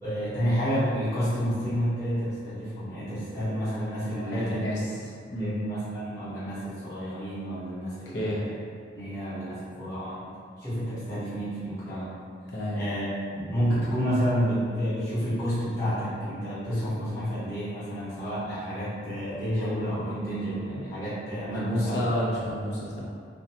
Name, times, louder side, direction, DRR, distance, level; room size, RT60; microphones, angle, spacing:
voice 1, 0.0-4.7 5.4-8.6 8.9-10.3 10.6-12.1 12.7-22.0 22.4-22.5, equal, 15° left, -14 dB, 0.9 m, -30 dB
voice 2, 4.1-5.0 5.3-5.5 8.1-8.4 12.5-12.8 21.5-23.0, equal, 80° left, -6 dB, 0.6 m, -30 dB
2.6 x 2.2 x 2.7 m, 2.2 s
head